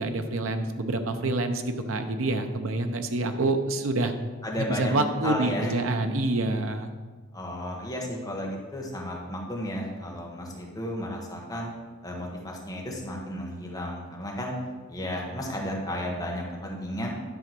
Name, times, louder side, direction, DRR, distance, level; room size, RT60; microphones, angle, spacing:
voice 1, 0.0-4.1 4.6-6.9, right 2 dB, 85° right, 7 dB, 0.7 m, -27 dB
voice 2, 4.4-4.9 5.2-5.9 7.3-11.7 12.0-14.5 14.9-17.1, left 1 dB, 20° left, -2 dB, 1.5 m, -33 dB
10.0 x 3.8 x 6.1 m, 1.4 s
head